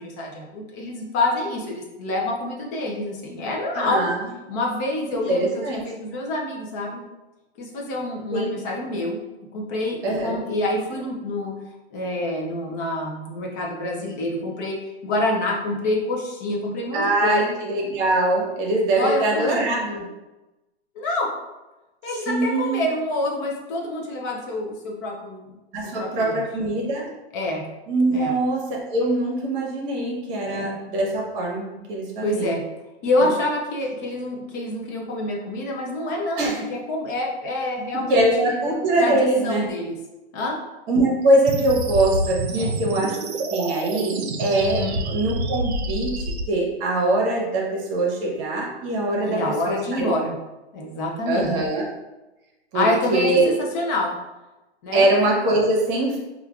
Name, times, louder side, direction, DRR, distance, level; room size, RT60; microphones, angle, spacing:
voice 1, 0.0-4.0 4.5-7.0 7.6-9.2 9.5-11.5 11.9-17.6 19.0-19.6 20.9-21.3 22.0-25.5 25.8-26.4 27.3-27.6 28.1-28.4 30.4-30.7 32.2-32.6 33.0-39.2 39.4-39.9 40.3-40.6 42.6-42.8 44.8-45.0 49.2-50.4 50.7-51.5 52.7-54.1 54.8-55.1, left 2 dB, 20° left, -1 dB, 0.3 m, -27 dB
voice 2, 3.7-4.2 5.3-5.8 8.3-8.5 10.0-10.4 16.9-20.0 22.1-22.9 25.7-27.1 27.9-32.5 33.2-33.3 36.4-36.6 37.9-39.7 40.9-43.2 43.5-50.1 51.3-51.8 52.7-53.6 54.9-56.2, right 2 dB, 30° right, -2 dB, 1.0 m, -23 dB
sound 1, 41.5-46.4, right 2 dB, 75° right, 0.6 m, -28 dB
4.9 x 2.3 x 2.3 m, 1.1 s
hypercardioid pair, 140°, 33 cm